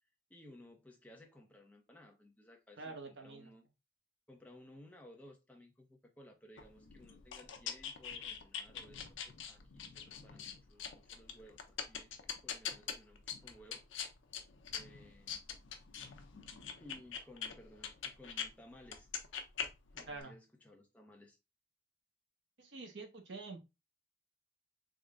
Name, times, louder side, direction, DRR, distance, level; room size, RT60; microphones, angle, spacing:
voice 1, 0.0-3.6 4.3-13.8 14.7-15.4 16.8-19.1 19.9-21.4, left 1 dB, 5° left, 0.6 m, -58 dB
voice 2, 2.8-3.5 20.1-20.3 22.6-23.6, right 3 dB, 65° right, 0.7 m, -47 dB
sound 1, 6.6-18.5 18.8-20.2, left 7 dB, 75° left, 0.6 m, -44 dB
3.7 x 2.1 x 3.6 m
head